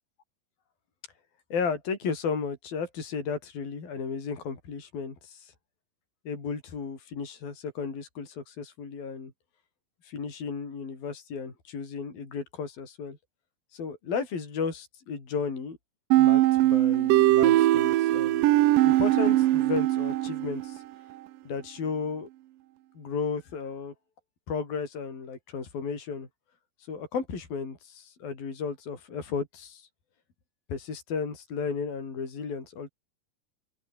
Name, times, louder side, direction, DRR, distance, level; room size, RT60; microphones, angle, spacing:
voice 1, 1.5-5.5 6.3-9.3 10.0-13.2 13.7-15.8 16.2-18.5 18.8-20.8 21.5-22.3 23.0-23.9 24.5-26.3 26.9-29.9 30.7-32.9, left 5 dB, 55° left, 7.5 m, -34 dB
sound 1, 16.1-20.8, right 15 dB, 75° right, 2.1 m, -21 dB
open air
omnidirectional pair, 5.0 m